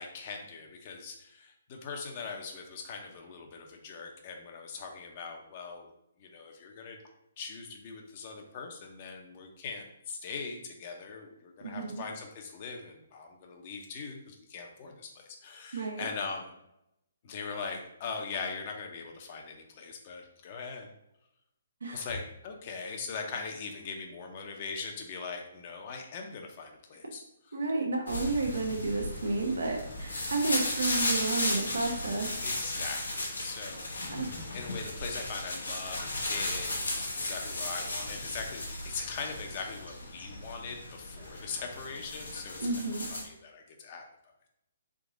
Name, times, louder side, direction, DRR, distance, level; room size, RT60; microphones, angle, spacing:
voice 1, 0.0-5.9 6.2-7.0 7.4-16.5 17.2-20.9 21.8-27.6 32.4-44.0, left 5 dB, 40° left, 3 dB, 0.8 m, -41 dB
voice 2, 11.6-11.9 15.7-16.0 21.8-22.0 27.5-32.3 34.0-34.3 42.6-43.1, right 3 dB, 85° right, 1 dB, 1.0 m, -31 dB
sound 1, 28.1-43.2, left 2 dB, 85° left, 1.1 m, -35 dB
3.7 x 2.8 x 3.8 m, 0.83 s
hypercardioid pair, 140°, 0 cm